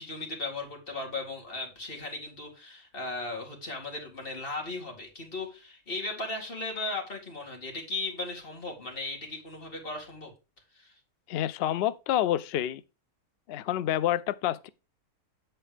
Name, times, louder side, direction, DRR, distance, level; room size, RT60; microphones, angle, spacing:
voice 1, 0.0-10.3 10.7-10.9, left 2 dB, 35° left, 2.4 m, -37 dB
voice 2, 11.3-12.8 13.5-14.7, left 12 dB, 90° left, 0.5 m, -28 dB
8.1 x 4.4 x 4.9 m
omnidirectional pair, 1.6 m